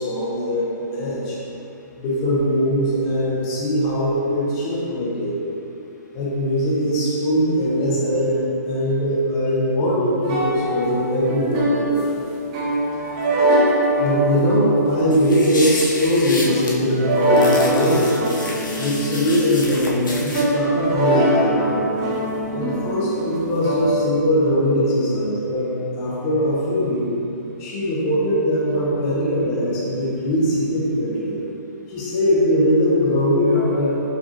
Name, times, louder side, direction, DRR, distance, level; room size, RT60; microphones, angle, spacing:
voice 1, 0.0-1.4 2.0-5.4 6.1-12.0 14.0-18.2 18.8-21.8 22.5-27.1 27.6-31.4 31.9-34.0, equal, 20° left, -7 dB, 0.8 m, -21 dB
sound 1, 10.2-23.9, right 1 dB, 20° right, 0.4 m, -23 dB
sound 2, 15.1-16.7 17.4-20.4, left 2 dB, 85° left, 0.9 m, -31 dB
4.9 x 3.4 x 2.9 m, 2.9 s
hypercardioid pair, 165°, 10 cm